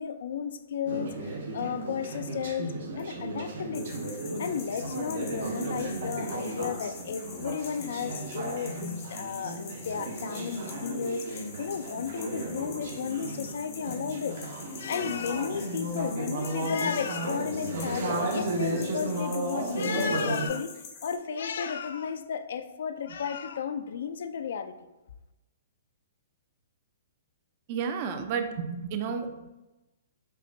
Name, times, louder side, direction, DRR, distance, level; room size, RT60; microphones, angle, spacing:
voice 1, 0.0-4.0 4.4-14.4 14.8-20.7 21.0-24.7, left 7 dB, 70° left, 9 dB, 0.3 m, -33 dB
Conversation / Chatter, 0.9-20.5, right 2 dB, 70° right, 0.8 m, -34 dB
sound 1, 3.7-21.2, left 5 dB, 30° left, 0.6 m, -46 dB
voice 2, 27.7-29.5, right 6 dB, 40° right, 7 dB, 0.4 m, -32 dB
5.3 x 2.2 x 2.6 m, 1.0 s
hypercardioid pair, 150°, 0 cm